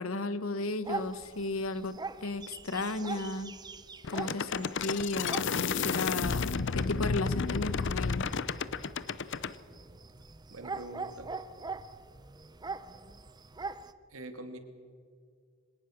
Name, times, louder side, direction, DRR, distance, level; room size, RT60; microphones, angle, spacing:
voice 1, 0.0-3.5 4.1-8.2, left 2 dB, 85° left, 13 dB, 1.3 m, -34 dB
sound 1, 0.8-13.9, right 4 dB, 20° right, 0.7 m, -43 dB
sound 2, 4.0-9.5, left 5 dB, 60° left, 0.7 m, -31 dB
voice 2, 10.5-11.3 14.1-14.6, right 2 dB, 80° right, 7 dB, 2.3 m, -44 dB
25.0 x 18.5 x 6.4 m, 2.1 s
head